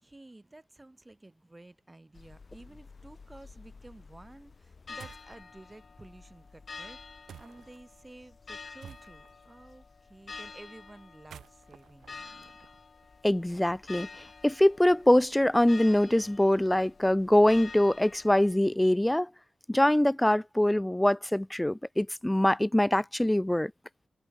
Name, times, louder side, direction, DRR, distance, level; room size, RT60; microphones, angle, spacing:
voice 1, 0.0-12.6, right 2 dB, 20° right, 4.9 m, -52 dB
sound 1, 2.2-18.6, left 4 dB, 50° left, 1.3 m, -49 dB
sound 2, 5.0-5.4 7.3-7.8 8.8-9.4 11.1-13.1, right 9 dB, 85° right, 1.5 m, -51 dB
voice 2, 13.2-14.1 14.4-19.3 19.7-23.7, left 1 dB, 10° left, 0.4 m, -23 dB
cardioid pair, 50°, 0 cm